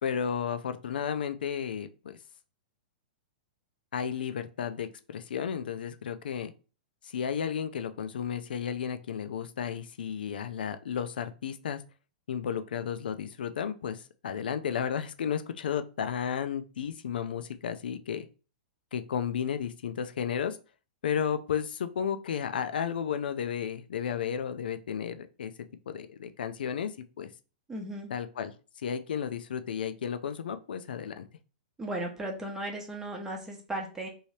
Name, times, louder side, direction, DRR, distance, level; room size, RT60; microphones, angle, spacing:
voice 1, 0.0-2.2 3.9-6.5 7.0-11.8 12.3-18.3 18.9-20.6 21.0-25.5 25.9-26.9 27.2-27.3 28.1-28.5 28.8-31.3, left 8 dB, 85° left, 10 dB, 0.4 m, -33 dB
voice 2, 27.7-28.1 31.8-34.1, right 1 dB, 10° right, 1 dB, 0.7 m, -36 dB
2.8 x 2.7 x 3.1 m, 0.35 s
hypercardioid pair, 145°, 5 cm